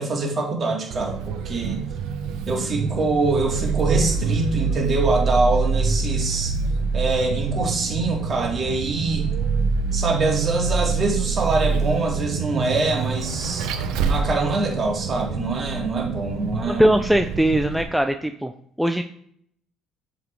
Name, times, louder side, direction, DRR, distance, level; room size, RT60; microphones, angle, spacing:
voice 1, 0.0-1.8 2.5-6.5 6.9-9.3 9.9-13.7 14.1-16.9, right 3 dB, 40° right, -1 dB, 2.2 m, -24 dB
Vehicle, 0.9-17.8, right 5 dB, 75° right, 0.7 m, -26 dB
voice 2, 16.7-18.5 18.8-19.0, right 1 dB, ahead, 6 dB, 0.4 m, -20 dB
7.3 x 4.1 x 3.4 m, 0.66 s
supercardioid pair, 80°, 0 cm